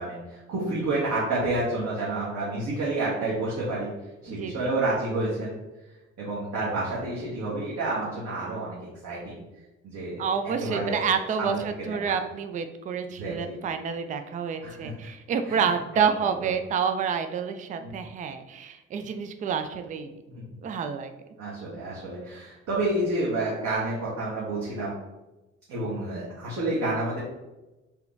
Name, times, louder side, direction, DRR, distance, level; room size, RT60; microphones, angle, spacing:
voice 1, 0.0-3.9 4.2-5.5 6.2-8.8 9.0-9.4 9.8-11.1 11.4-12.2 13.2-13.5 14.6-14.9 15.5-16.0 16.4-16.5 17.8-17.9 20.3-20.4 21.4-24.9 25.7-27.2, right 2 dB, 50° right, -7 dB, 1.1 m, -29 dB
voice 2, 4.3-4.7 10.2-20.1 20.6-21.1, right 6 dB, 25° right, 8 dB, 0.3 m, -28 dB
3.4 x 2.9 x 3.2 m, 1.0 s
figure-of-eight pair, 45°, 34 cm